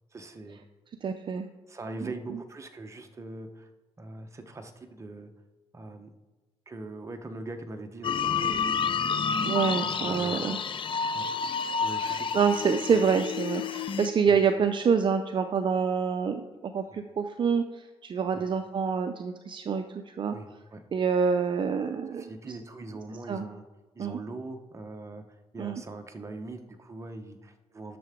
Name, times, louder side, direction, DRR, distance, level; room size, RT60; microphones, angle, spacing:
voice 1, 0.1-0.6 1.7-3.7 4.0-5.3 5.7-6.1 6.7-9.0 9.8-10.5 11.1-11.3 11.8-12.5 14.3-14.4 16.9-17.0 18.3-18.5 20.3-20.8 22.2-23.6 23.9-28.0, right 2 dB, 25° right, 5 dB, 1.0 m, -42 dB
voice 2, 1.0-1.5 2.0-2.4 9.4-10.6 12.0-20.4 20.9-22.2 23.3-23.5 24.0-24.2 25.6-25.8, right 6 dB, 45° right, 7 dB, 0.5 m, -27 dB
sound 1, 8.0-14.1, left 6 dB, 50° left, 0.6 m, -29 dB
10.0 x 6.7 x 3.7 m, 1.2 s
cardioid pair, 85°, 11 cm